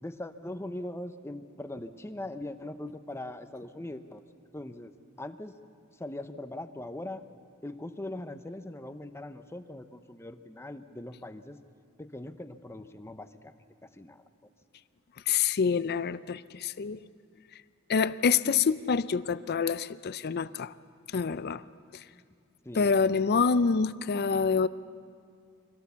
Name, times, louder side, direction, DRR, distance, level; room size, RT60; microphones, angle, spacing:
voice 1, 0.0-4.2 4.5-4.9 5.2-5.5 6.0-7.2 7.6-11.6 12.0-13.5 13.9-14.2 22.6-23.1, left 1 dB, 10° left, 9 dB, 0.7 m, -41 dB
voice 2, 15.3-17.0 17.9-20.7 21.1-21.6 22.7-24.7, left 5 dB, 50° left, 16 dB, 0.5 m, -26 dB
23.5 x 17.5 x 7.0 m, 2.2 s
head